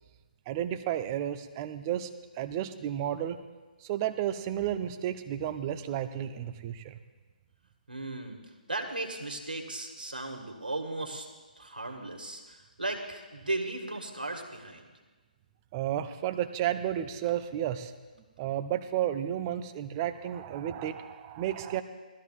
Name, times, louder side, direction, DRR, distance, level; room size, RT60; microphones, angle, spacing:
voice 1, 0.5-2.1 2.3-3.4 3.8-7.0 15.7-17.9 18.4-21.8, right 11 dB, 25° right, 10 dB, 0.6 m, -32 dB
voice 2, 7.9-8.4 8.7-11.3 11.6-14.9, right 2 dB, 80° right, 3 dB, 1.9 m, -36 dB
18.5 x 13.0 x 2.5 m, 1.3 s
figure-of-eight pair, 140°, 5 cm